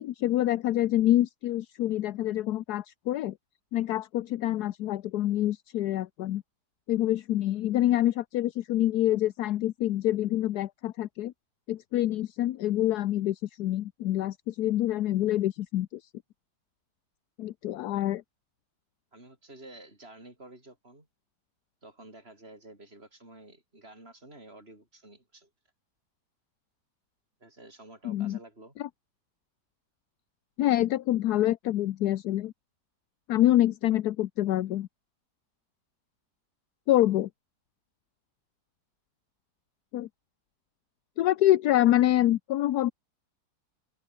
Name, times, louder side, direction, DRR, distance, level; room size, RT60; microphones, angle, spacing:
voice 1, 0.0-3.3 3.7-6.4 6.9-11.3 11.7-16.0 17.4-18.2 28.0-28.4 28.8-28.9 30.6-32.5 33.3-34.9 36.9-37.3 39.9-40.1 41.2-42.9, left 13 dB, 70° left, 1.2 m, -26 dB
voice 2, 19.1-21.1 21.8-25.5 27.4-28.7, right 2 dB, 35° right, 7.9 m, -50 dB
open air
omnidirectional pair, 1.8 m